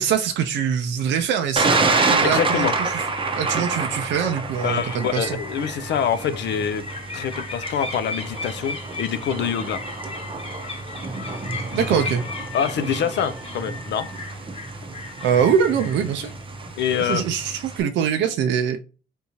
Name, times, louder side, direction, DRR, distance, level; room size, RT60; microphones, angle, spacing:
voice 1, 0.0-1.8 2.1-3.1 3.3-5.4 11.7-12.2 15.2-16.3 17.0-18.8, right 7 dB, 70° right, 0.4 m, -23 dB
Thunder, 1.6-17.8, right 3 dB, 25° right, 0.6 m, -28 dB
voice 2, 2.2-2.7 4.6-6.8 7.1-9.8 11.7-12.0 12.5-14.1 16.8-17.2, left 8 dB, 65° left, 0.4 m, -25 dB
sound 1, 4.5-16.9, left 3 dB, 30° left, 1.0 m, -37 dB
3.5 x 2.7 x 2.9 m
cardioid pair, 90°, 20 cm